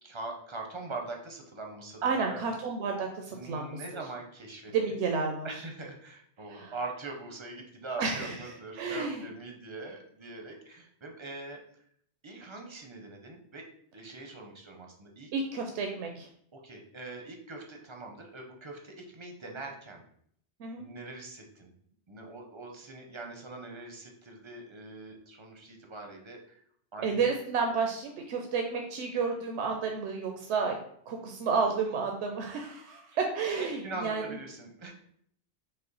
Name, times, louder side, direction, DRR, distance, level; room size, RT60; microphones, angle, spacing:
voice 1, 0.0-2.4 3.3-5.0 5.4-11.6 12.2-13.6 13.9-15.3 16.5-20.0 20.8-21.7 22.1-26.6 26.9-27.3 33.5-34.9, right 2 dB, 35° right, 1 dB, 0.5 m, -42 dB
voice 2, 2.0-3.8 4.7-5.5 6.5-6.7 8.0-9.2 15.3-16.3 20.6-20.9 27.0-30.8 31.1-34.4, right 5 dB, 80° right, 2 dB, 0.8 m, -31 dB
5.4 x 2.1 x 3.9 m, 0.66 s
omnidirectional pair, 1.1 m